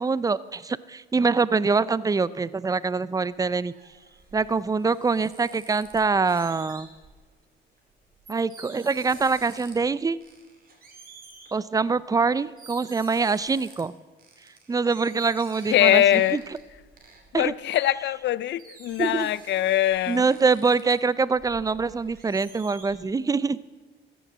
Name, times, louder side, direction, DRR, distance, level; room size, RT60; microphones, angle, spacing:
voice 1, 0.0-3.7 4.3-6.9 8.3-10.2 11.5-13.9 14.7-16.4 17.3-17.5 19.0-19.3 20.1-23.6, right 4 dB, 20° right, 19 dB, 0.4 m, -24 dB
sound 1, 3.7-7.3 7.8-9.9 10.2-11.6 12.2-12.3 12.6-13.8 14.2-18.3 18.6-20.9 21.3-23.0, right 4 dB, 45° right, 2.7 m, -49 dB
voice 2, 15.7-16.4 17.3-20.2, left 12 dB, 65° left, 20 dB, 0.5 m, -22 dB
14.0 x 7.0 x 7.3 m, 1.3 s
cardioid pair, 90°, 20 cm